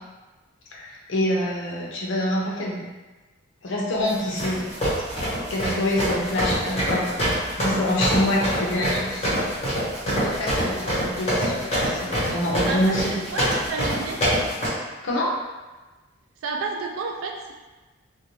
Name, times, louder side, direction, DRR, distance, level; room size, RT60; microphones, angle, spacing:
voice 1, 0.7-2.9 3.6-4.7 5.5-13.2 15.0-15.3, left 1 dB, 65° left, -3 dB, 0.6 m, -26 dB
sound 1, 4.1-14.7, equal, 30° left, 1.1 m, -25 dB
voice 2, 8.2-9.1 9.3-9.4 12.6-14.2 16.4-17.5, right 4 dB, 80° right, 1 dB, 0.3 m, -32 dB
2.4 x 2.2 x 3.0 m, 1.2 s
head